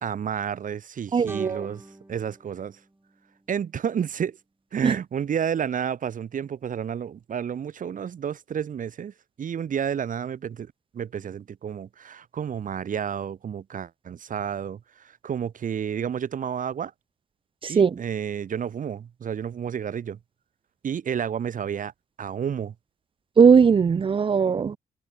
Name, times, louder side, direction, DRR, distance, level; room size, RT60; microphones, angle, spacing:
voice 1, 0.0-1.8 2.1-2.8 3.5-4.4 4.7-9.1 9.4-14.8 15.2-16.9 17.7-20.2 20.8-21.9 22.2-22.7, right 8 dB, 50° right, 0.8 m, -30 dB
voice 2, 1.1-1.7 4.8-5.0 17.6-18.0 23.4-24.8, right 6 dB, 30° right, 0.4 m, -19 dB
sound 1, 1.2-4.3, right 1 dB, 15° right, 5.5 m, -48 dB
supercardioid pair, 50°, 18 cm